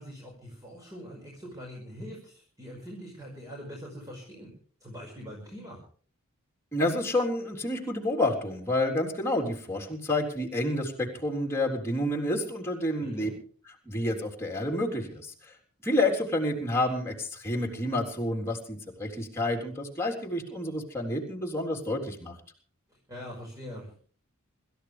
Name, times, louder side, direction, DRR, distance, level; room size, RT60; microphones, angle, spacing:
voice 1, 0.0-4.5 4.8-5.8 13.0-13.4 22.9-24.0, equal, 15° right, -3 dB, 5.6 m, -43 dB
voice 2, 6.7-13.3 13.9-15.5 15.8-22.4, left 1 dB, 10° left, 1 dB, 3.7 m, -29 dB
27.0 x 14.0 x 3.4 m, 0.44 s
head